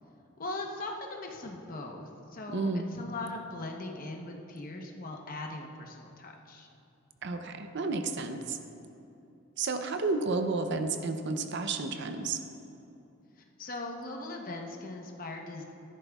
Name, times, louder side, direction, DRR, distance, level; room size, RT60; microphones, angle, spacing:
voice 1, 0.4-6.7 13.4-15.6, left 2 dB, 45° left, 2 dB, 0.9 m, -40 dB
voice 2, 2.5-2.9 7.2-8.6 9.6-12.4, right 3 dB, 60° right, 7 dB, 0.6 m, -31 dB
13.5 x 11.0 x 2.3 m, 2.8 s
head